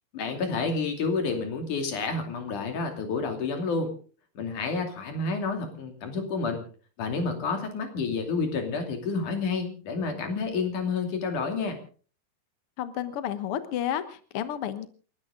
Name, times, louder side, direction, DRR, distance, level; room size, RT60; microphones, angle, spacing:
voice 1, 0.1-3.9 4.4-6.6 7.0-11.8, left 4 dB, 55° left, 5 dB, 4.0 m, -29 dB
voice 2, 12.8-14.9, left 10 dB, 85° left, 11 dB, 1.2 m, -31 dB
28.5 x 13.0 x 3.8 m, 0.41 s
omnidirectional pair, 4.5 m